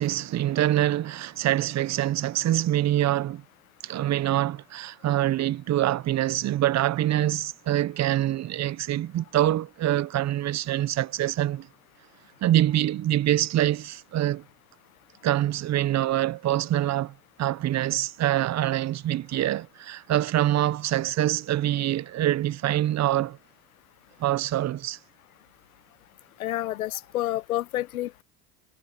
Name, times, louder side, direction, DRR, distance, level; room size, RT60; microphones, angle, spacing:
voice 1, 0.0-3.4 3.8-11.7 12.4-14.4 15.2-23.4 24.2-25.0, right 13 dB, 40° right, 1.0 m, -25 dB
voice 2, 26.4-28.2, left 15 dB, 85° left, 1.2 m, -29 dB
hypercardioid pair, 80°, 41 cm